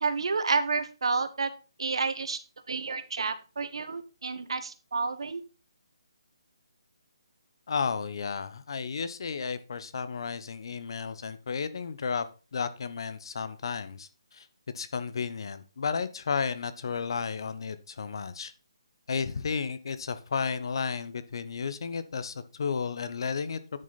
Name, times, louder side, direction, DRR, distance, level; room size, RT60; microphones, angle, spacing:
voice 1, 0.0-1.5 1.8-2.4 2.7-5.4, right 4 dB, 70° right, 11 dB, 1.4 m, -30 dB
voice 2, 7.7-12.3 12.5-14.5 14.7-18.5 19.1-23.6, left 5 dB, 55° left, 13 dB, 1.0 m, -33 dB
10.5 x 6.7 x 4.2 m, 0.33 s
hypercardioid pair, 160°, 3 cm